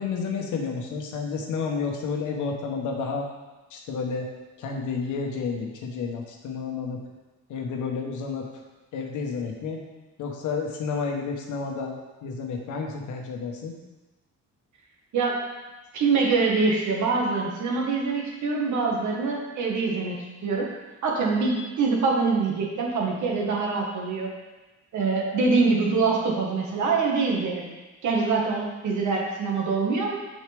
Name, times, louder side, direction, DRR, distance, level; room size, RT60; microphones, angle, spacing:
voice 1, 0.0-3.3 3.7-4.3 4.6-7.0 7.5-8.5 8.9-9.8 10.2-11.9 12.2-13.7, left 5 dB, 80° left, 1 dB, 1.1 m, -30 dB
voice 2, 15.1-15.5 15.9-20.2 20.4-20.7 21.0-24.3 24.9-27.7 28.0-30.2, right 4 dB, 70° right, -1 dB, 1.6 m, -24 dB
6.4 x 6.4 x 3.4 m, 1.2 s
cardioid pair, 90°, 30 cm